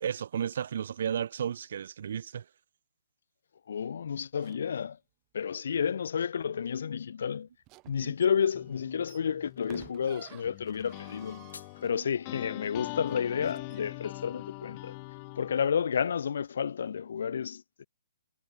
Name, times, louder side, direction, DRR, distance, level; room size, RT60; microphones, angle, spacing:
voice 1, 0.0-2.4 7.8-8.1, right 8 dB, 45° right, 0.6 m, -33 dB
voice 2, 3.7-5.0 5.3-7.5 7.9-11.5 11.8-15.0 15.4-17.9, left 7 dB, 50° left, 0.8 m, -31 dB
sound 1, 4.3-4.9 7.6-12.4 13.4-13.8, right 23 dB, 15° right, 3.1 m, -54 dB
sound 2, 8.5-15.7, left 30 dB, 20° left, 1.7 m, -43 dB
sound 3, 11.1-12.1, left 5 dB, 80° left, 6.2 m, -52 dB
hypercardioid pair, 180°, 0 cm